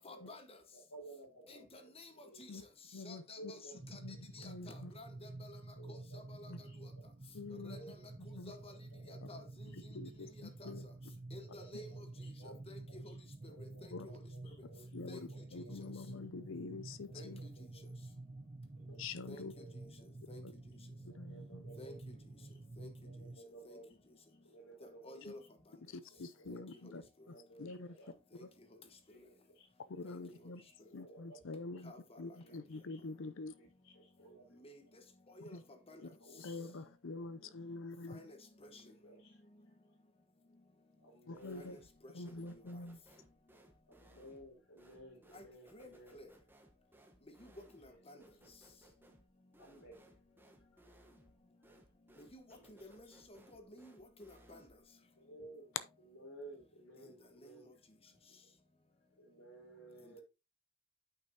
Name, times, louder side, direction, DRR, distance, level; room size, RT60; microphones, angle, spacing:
voice 1, 0.0-0.6 1.5-2.1 2.4-2.5 3.0-3.6 3.9-4.0 4.3-5.6 5.9-6.5 7.6-7.8 8.5-8.7 9.3-9.4 10.6-10.7 11.3-12.0 12.4-13.1 13.4-14.2 14.4-14.5 15.1-15.2 17.1-17.3 19.3-19.4 20.3-20.4 21.8-22.0 22.8-22.9 23.6-23.8 25.0-25.4 26.5-26.6 26.8-26.9 28.4-28.5 30.0-30.2 31.8-32.4 34.6-34.8 35.3-35.6 35.9-36.0 38.1-38.4 38.7-38.8 41.6-41.7 42.0-42.1 45.3-45.4 45.7-46.3 47.4-47.5 47.8-48.2 52.3-52.4 52.7-53.9 54.2-54.6 57.0-57.1 57.4-57.5, left 1 dB, 25° left, 1.1 m, -52 dB
voice 2, 0.7-2.9 3.3-3.9 4.3-4.5 5.1-5.3 5.7-6.2 6.6-6.8 7.7-8.4 8.9-9.2 9.7-10.0 10.7-12.6 12.9-13.2 13.5-15.0 15.3-16.5 17.1-17.9 18.7-19.0 19.5-20.1 20.9-22.6 23.0-25.5 26.1-28.2 29.0-29.7 30.2-31.4 31.7-31.8 32.4-33.1 33.6-34.7 35.7-36.9 37.1-37.5 38.7-39.4 41.0-41.8 43.8-46.2 47.8-48.5 49.6-50.0 52.5-53.4 55.1-55.7 56.0-57.8 58.1-58.5 59.2-60.2, right 1 dB, 85° left, 3.3 m, -57 dB
voice 3, 2.9-3.5 4.0-4.2 4.4-4.9 6.5-6.6 7.3-7.8 8.3-8.5 9.7-10.8 13.9-14.1 14.9-17.4 19.0-19.5 20.4-20.5 21.0-21.6 25.3-25.4 25.9-27.0 27.6-28.0 28.4-28.5 29.9-30.6 30.9-31.9 32.2-33.6 35.4-35.6 36.4-38.2 41.3-41.8 42.1-43.0, left 3 dB, 60° left, 0.6 m, -46 dB
sound 1, 3.8-23.4, right 2 dB, 30° right, 0.8 m, -50 dB
sound 2, 41.3-42.0 42.3-54.9, right 1 dB, 10° right, 1.0 m, -65 dB
9.1 x 5.8 x 2.8 m
head